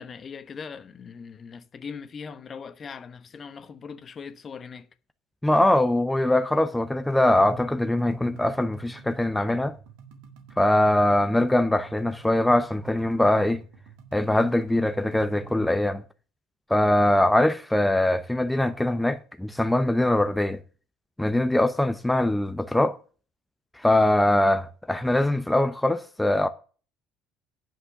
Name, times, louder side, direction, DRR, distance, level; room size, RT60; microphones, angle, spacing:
voice 1, 0.0-4.9, left 6 dB, 40° left, 1.1 m, -40 dB
voice 2, 5.4-9.7 10.6-13.6 14.1-16.0 16.7-20.6 21.2-23.0 23.8-26.5, left 1 dB, 5° left, 0.8 m, -22 dB
sound 1, 7.5-16.0, right 6 dB, 75° right, 1.8 m, -49 dB
9.9 x 6.1 x 6.8 m
hypercardioid pair, 65°, 0 cm